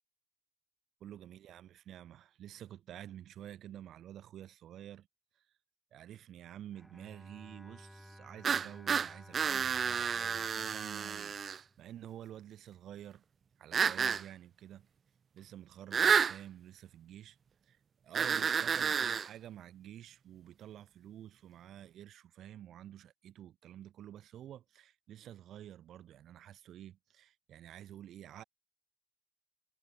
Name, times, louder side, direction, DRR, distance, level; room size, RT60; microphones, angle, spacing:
voice 1, 1.0-5.1 5.4-5.5 5.9-13.2 13.6-14.9 15.3-17.4 17.6-17.8 18.0-28.4, right 11 dB, 80° right, 2.2 m, -50 dB
Bowed string instrument, 6.7-12.0, equal, ahead, 4.9 m, -56 dB
sound 1, 8.4-11.6 13.7-14.2 15.9-16.4 18.1-19.3, right 7 dB, 65° right, 0.5 m, -30 dB
supercardioid pair, 45°, 0 cm